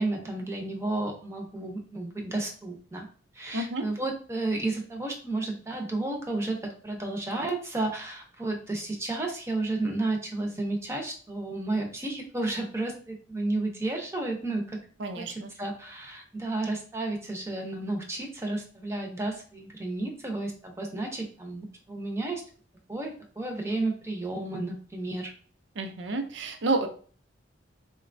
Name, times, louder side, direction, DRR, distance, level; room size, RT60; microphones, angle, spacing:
voice 1, 0.0-3.1 3.3-14.8 15.1-22.4 22.9-25.3, right 2 dB, 15° right, 2 dB, 0.6 m, -32 dB
voice 2, 3.5-3.9 15.0-15.5 25.8-26.9, right 2 dB, 85° right, 6 dB, 0.5 m, -30 dB
3.9 x 2.2 x 2.5 m, 0.42 s
head